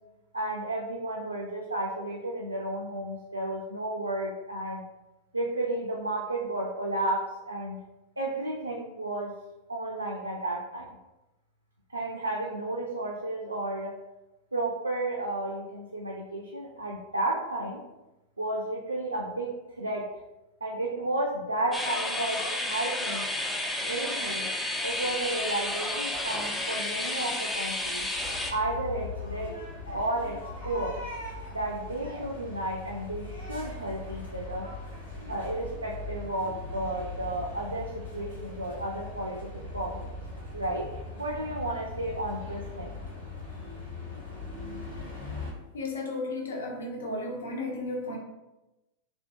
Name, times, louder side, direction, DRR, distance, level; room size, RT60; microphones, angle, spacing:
voice 1, 0.3-4.8 5.3-7.8 8.2-9.4 9.7-10.9 11.9-14.0 14.5-17.8 18.4-20.1 20.6-23.3 23.8-24.5 24.8-28.1 28.5-29.6 29.9-31.0 31.5-34.7 35.3-40.2 40.5-40.9 41.2-43.0, right 1 dB, 80° right, -2 dB, 0.3 m, -32 dB
sound 1, 21.7-28.5, left 1 dB, 10° left, 0.3 m, -31 dB
sound 2, 28.1-45.5, left 3 dB, 80° left, 1.1 m, -40 dB
voice 2, 45.7-48.2, left 2 dB, 65° left, 0 dB, 0.5 m, -34 dB
2.5 x 2.4 x 2.4 m, 0.99 s
figure-of-eight pair, 90°, 0 cm